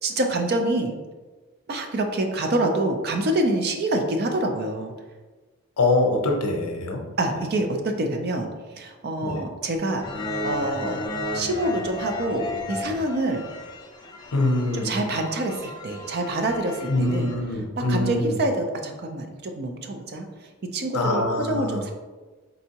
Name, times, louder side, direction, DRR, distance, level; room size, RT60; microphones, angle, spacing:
voice 1, 0.0-1.0 1.7-4.9 7.2-10.0 10.4-11.0 11.3-13.4 14.7-17.3 17.9-21.9, right 1 dB, 45° right, 4 dB, 0.5 m, -26 dB
voice 2, 5.8-7.0 9.2-9.3 14.3-14.9 16.9-18.4 20.9-21.8, left 2 dB, 80° left, 3 dB, 0.7 m, -24 dB
sound 1, 10.0-17.3, left 1 dB, 20° left, 0.4 m, -34 dB
4.1 x 3.5 x 2.8 m, 1.3 s
head